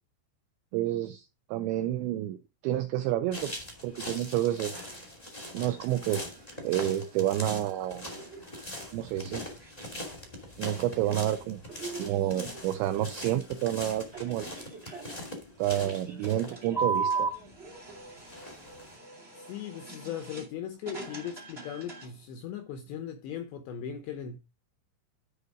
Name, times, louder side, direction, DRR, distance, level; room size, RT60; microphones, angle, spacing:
voice 1, 0.7-2.4 2.6-3.5 3.8-4.8 5.5-6.2 6.6-8.1 8.9-9.4 10.6-11.6 12.0-14.5 15.6-17.3, right 13 dB, 90° right, 2.5 m, -29 dB
sound 1, 3.3-17.5 18.1-19.0, right 2 dB, 45° left, 0.5 m, -38 dB
sound 2, 3.7-22.3, right 3 dB, 60° right, 0.6 m, -48 dB
voice 2, 19.3-24.4, left 9 dB, 80° left, 2.5 m, -38 dB
12.5 x 4.1 x 4.8 m
omnidirectional pair, 6.0 m